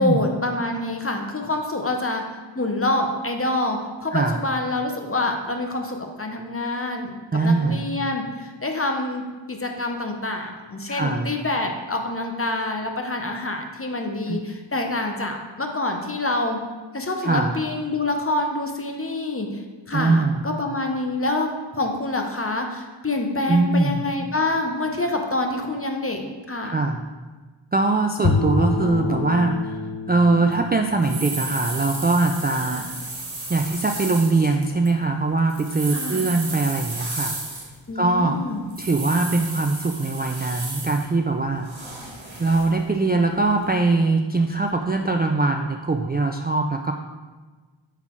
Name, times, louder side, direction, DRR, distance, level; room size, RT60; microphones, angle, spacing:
voice 1, 0.0-9.2 9.5-16.6 16.9-19.6 19.9-26.7 32.6-32.9 35.9-36.3 37.9-38.6, left 2 dB, 30° left, 3 dB, 0.8 m, -26 dB
voice 2, 7.3-7.8 10.9-11.3 14.3-14.4 17.2-17.5 19.9-20.5 23.5-24.0 26.6-27.0 27.7-29.8 30.1-32.9 33.5-37.4 38.0-38.4 38.8-41.7 42.4-46.9, right 3 dB, 25° right, 3 dB, 0.3 m, -22 dB
Bowed string instrument, 28.2-32.5, left 3 dB, 65° left, 0.7 m, -28 dB
sound 1, 30.5-30.6 31.0-34.9 35.4-37.9 38.7-41.1 41.6-42.8 43.4-43.5, right 2 dB, 70° right, 1.4 m, -33 dB
5.7 x 4.1 x 4.5 m, 1.3 s
wide cardioid pair, 45°, 47 cm